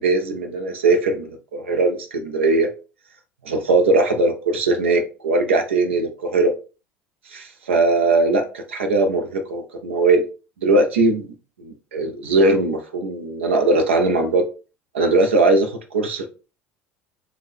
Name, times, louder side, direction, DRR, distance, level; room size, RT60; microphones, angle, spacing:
voice 1, 0.0-2.7 3.4-6.5 7.3-10.2 10.6-11.3 11.6-14.5 14.9-16.3, right 2 dB, 85° right, 5 dB, 0.7 m, -20 dB
3.7 x 2.2 x 3.2 m, 0.33 s
hypercardioid pair, 70°, 6 cm